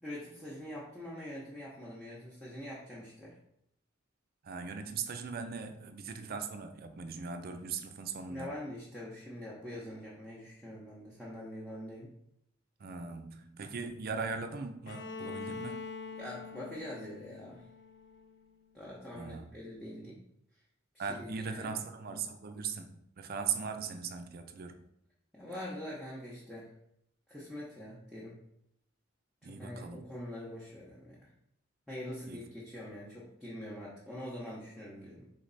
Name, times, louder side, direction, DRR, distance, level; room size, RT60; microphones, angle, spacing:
voice 1, 0.0-3.4 8.3-12.1 16.2-17.7 18.7-20.2 20.9-21.8 25.3-26.7 27.3-28.4 29.4-31.3 31.9-35.3, left 1 dB, ahead, -7 dB, 0.8 m, -44 dB
voice 2, 4.4-8.6 12.8-15.8 19.1-19.5 21.0-24.9 29.4-30.1 32.3-32.4, right 5 dB, 50° right, 7 dB, 0.5 m, -39 dB
Bowed string instrument, 14.9-18.7, left 4 dB, 60° left, 0.4 m, -44 dB
4.0 x 3.2 x 4.0 m, 0.76 s
head